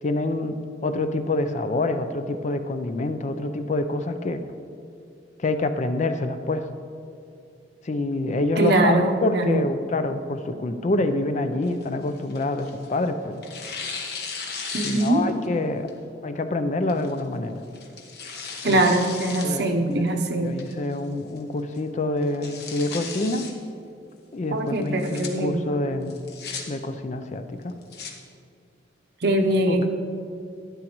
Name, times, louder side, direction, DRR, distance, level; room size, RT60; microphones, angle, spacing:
voice 1, 0.0-0.6 0.8-4.4 5.4-6.7 7.8-13.4 14.8-15.9 16.2-17.6 18.6-18.8 19.4-20.0 20.4-23.5 24.3-26.2 26.7-27.7 29.7-29.9, left 2 dB, 40° left, 9 dB, 0.4 m, -26 dB
voice 2, 8.6-9.6 14.7-15.3 18.6-20.6 24.5-25.6 29.2-29.9, right 1 dB, 60° right, 4 dB, 0.8 m, -22 dB
Tearing, 11.6-13.0 13.4-15.5 15.9-16.0 16.9-17.2 17.7-19.5 19.9-20.0 20.6-21.0 21.4-21.5 21.7-21.8 22.2-23.5 24.8-25.3 26.1-26.6 27.6-28.1, left 5 dB, 55° left, 1.1 m, -36 dB
11.5 x 9.8 x 3.0 m, 2.4 s
head